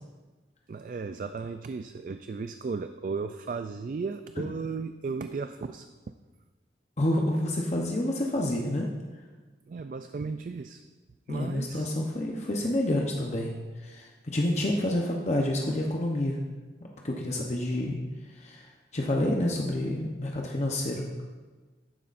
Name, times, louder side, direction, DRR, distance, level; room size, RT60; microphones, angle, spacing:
voice 1, 0.7-6.1 9.7-10.8 11.3-11.9, right 4 dB, 45° right, 9 dB, 0.3 m, -35 dB
voice 2, 7.0-8.9 11.3-13.5 13.8-16.4 17.0-18.0 18.3-21.0, left 1 dB, 40° left, 0 dB, 0.8 m, -28 dB
12.5 x 9.5 x 2.5 m, 1.3 s
head